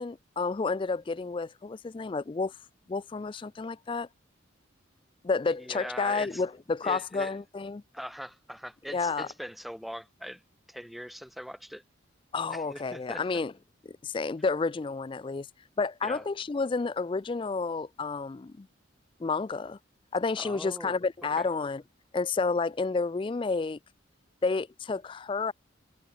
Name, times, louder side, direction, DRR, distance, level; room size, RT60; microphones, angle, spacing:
voice 1, 0.0-2.6 2.9-4.1 5.2-7.8 8.9-9.3 12.3-13.5 13.9-15.5 15.8-18.7 19.2-19.8 20.1-21.8 22.1-23.8 24.4-25.5, left 4 dB, 25° left, 0.3 m, -30 dB
voice 2, 5.5-6.4 6.8-7.3 7.9-10.4 10.7-11.8 12.5-13.4 16.0-16.2 20.4-20.9 21.4-21.5, equal, ahead, 2.7 m, -41 dB
head